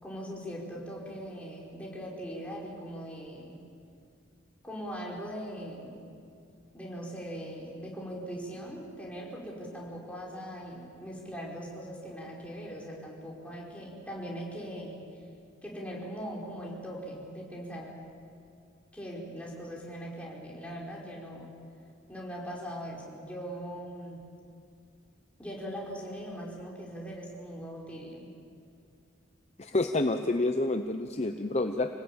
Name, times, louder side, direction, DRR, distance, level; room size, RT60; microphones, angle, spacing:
voice 1, 0.0-3.6 4.6-6.1 6.7-15.0 15.6-18.0 18.9-21.5 22.1-24.2 25.4-28.3, equal, 5° left, -4 dB, 5.0 m, -40 dB
voice 2, 29.6-31.9, left 2 dB, 35° left, 6 dB, 0.8 m, -28 dB
27.0 x 19.0 x 8.9 m, 2.4 s
head